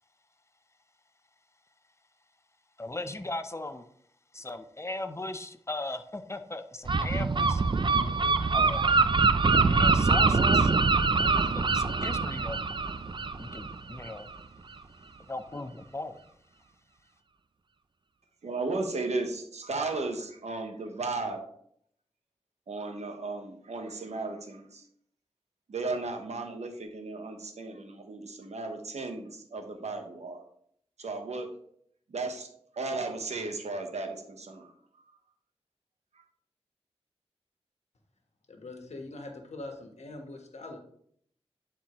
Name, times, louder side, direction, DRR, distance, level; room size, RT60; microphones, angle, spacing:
voice 1, 2.8-3.8 4.3-7.6 8.5-9.0 9.7-10.7 11.5-12.6 13.4-14.3 15.3-16.2, left 2 dB, 25° left, 9 dB, 0.7 m, -38 dB
Gull seagull, 6.8-14.4, right 4 dB, 45° right, 0.5 m, -24 dB
voice 2, 18.4-21.4 22.7-24.8 25.7-30.4 31.0-31.5 32.1-32.5 32.7-34.7, right 3 dB, 90° right, 5 dB, 1.0 m, -35 dB
voice 3, 38.5-40.8, left 2 dB, 85° left, 3 dB, 1.4 m, -42 dB
11.0 x 4.4 x 3.1 m, 0.67 s
cardioid pair, 45°, 11 cm